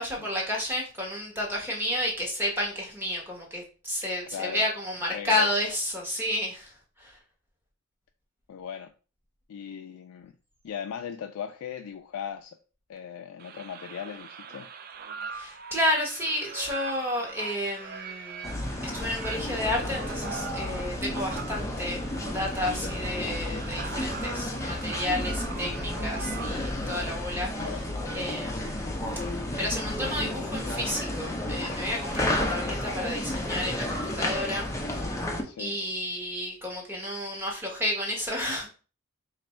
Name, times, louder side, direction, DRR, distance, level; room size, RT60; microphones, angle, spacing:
voice 1, 0.0-6.7 7.0-7.2 15.3-18.5 18.8-22.0 22.3-27.8 28.1-28.9 29.6-35.1 35.6-38.7, left 1 dB, 10° right, -2 dB, 1.1 m, -31 dB
voice 2, 4.3-4.6 5.1-5.5 8.5-8.9 9.5-10.3 10.6-12.6 12.9-14.7 27.6-27.8 35.4-35.7, left 8 dB, 90° left, 6 dB, 0.3 m, -38 dB
sound 1, 13.4-26.9, right 6 dB, 45° right, 0.3 m, -42 dB
sound 2, 18.4-35.4, left 1 dB, 15° left, 0.6 m, -32 dB
3.2 x 2.6 x 4.2 m, 0.36 s
head